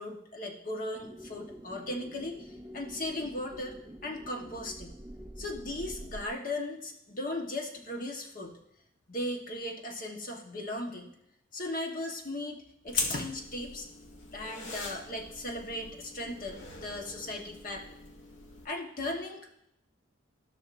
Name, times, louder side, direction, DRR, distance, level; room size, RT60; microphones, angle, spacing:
voice 1, 0.0-5.0 5.4-8.6 9.1-11.1 11.5-13.9 14.3-17.9 18.6-19.5, left 1 dB, 40° left, 2 dB, 1.2 m, -37 dB
sound 1, 0.9-6.3, equal, 10° right, 0.4 m, -46 dB
sound 2, 12.9-18.6, left 3 dB, 65° left, 1.4 m, -40 dB
15.0 x 6.2 x 2.6 m, 0.77 s
head